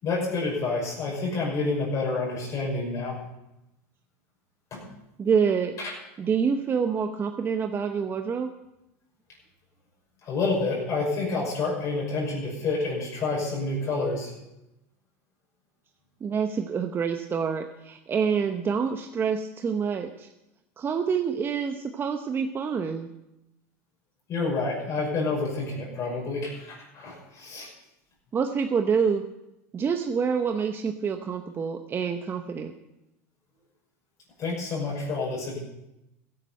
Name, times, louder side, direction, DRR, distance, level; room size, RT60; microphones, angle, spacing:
voice 1, 0.0-3.2 4.7-4.8 5.8-5.9 10.2-14.3 24.3-27.7 34.4-35.6, left 3 dB, 45° left, -3 dB, 5.8 m, -28 dB
voice 2, 5.2-5.7 6.2-8.5 16.2-20.3 20.8-23.1 28.3-29.2 29.7-32.7, right 6 dB, 30° right, 6 dB, 0.9 m, -27 dB
15.5 x 9.9 x 5.5 m, 0.89 s
hypercardioid pair, 100°, 8 cm